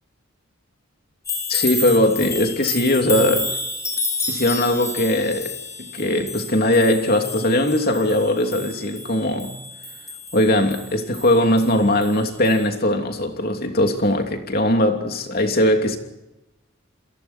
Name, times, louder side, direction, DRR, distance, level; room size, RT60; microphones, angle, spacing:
sound 1, 1.2-12.2 12.4-12.6, left 3 dB, 15° left, 5.5 m, -30 dB
voice 1, 1.5-3.6 4.3-5.5 5.8-9.6 10.3-16.0, left 1 dB, 45° left, 3.0 m, -20 dB
29.0 x 22.0 x 4.5 m
head